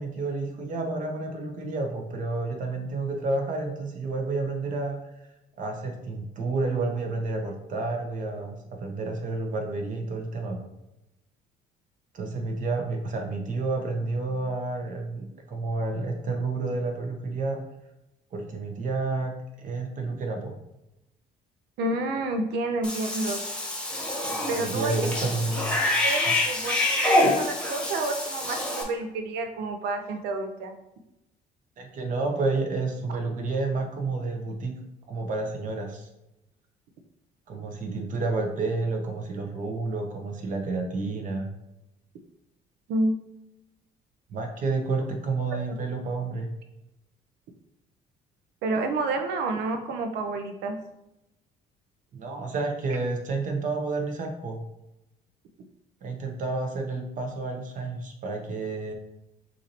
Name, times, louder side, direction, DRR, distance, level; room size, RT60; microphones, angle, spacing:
voice 1, 0.0-5.0 5.6-10.7 12.1-17.6 18.3-20.6 24.2-25.8 26.2-26.3 31.8-34.8 35.1-36.1 37.5-41.5 44.3-46.5 52.1-54.6 56.0-58.9, right 3 dB, 50° right, 3 dB, 1.0 m, -30 dB
voice 2, 21.8-23.4 24.5-25.1 26.0-26.7 27.0-30.7 42.9-43.1 48.6-50.8, right 2 dB, 80° right, 5 dB, 0.7 m, -29 dB
Cat / Bathtub (filling or washing), 22.8-28.8, left 1 dB, 5° left, 1.1 m, -26 dB
6.0 x 2.7 x 3.0 m, 0.90 s
cardioid pair, 110°, 17 cm